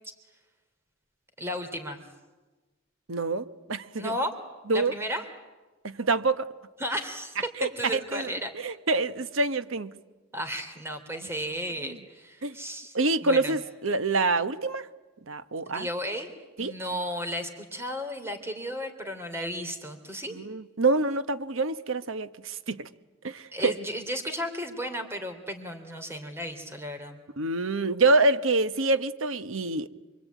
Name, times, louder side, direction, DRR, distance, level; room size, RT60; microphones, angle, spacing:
voice 1, 1.4-2.0 4.0-4.3 4.7-5.2 6.8-8.5 10.3-13.0 13.2-13.5 15.7-16.3 16.6-20.3 23.5-27.2, equal, 10° right, 3.0 m, -34 dB
voice 2, 3.1-4.1 4.7-4.9 5.8-6.5 7.6-9.9 11.1-11.3 11.8-12.0 12.4-12.5 12.9-14.9 15.3-15.9 16.6-16.7 20.3-22.9 23.2-23.7 27.4-29.9, right 3 dB, 75° right, 1.2 m, -26 dB
27.5 x 23.5 x 9.3 m
head